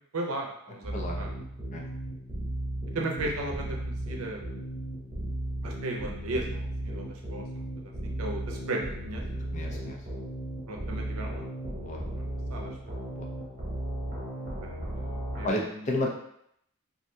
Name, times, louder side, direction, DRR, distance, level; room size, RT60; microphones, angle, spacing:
voice 1, 0.1-1.3 2.9-4.6 5.6-7.7 8.0-9.2 10.7-11.4 12.1-12.9 14.6-15.9, right 2 dB, 80° right, 1 dB, 0.6 m, -36 dB
sound 1, 0.8-15.5, right 1 dB, 35° right, 1.0 m, -35 dB
voice 2, 9.5-10.0 11.8-12.0 13.1-13.3 15.4-16.1, left 1 dB, 30° left, -1 dB, 0.4 m, -31 dB
3.2 x 2.5 x 2.6 m, 0.73 s
head